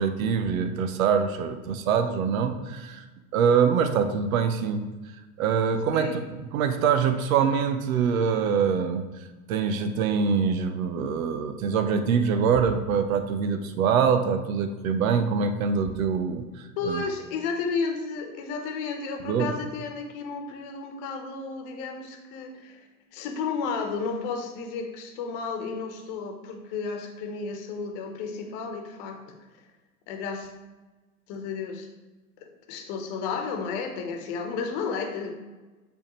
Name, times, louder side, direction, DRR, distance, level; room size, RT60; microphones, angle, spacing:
voice 1, 0.0-3.0 3.3-4.9 5.4-17.0 19.3-19.5, right 6 dB, 65° right, 8 dB, 0.8 m, -24 dB
voice 2, 16.8-22.8 23.1-29.4 30.1-30.5 31.3-31.9 32.7-35.3, left 5 dB, 50° left, 4 dB, 1.2 m, -32 dB
8.4 x 3.6 x 3.1 m, 1.2 s
hypercardioid pair, 85°, 45 cm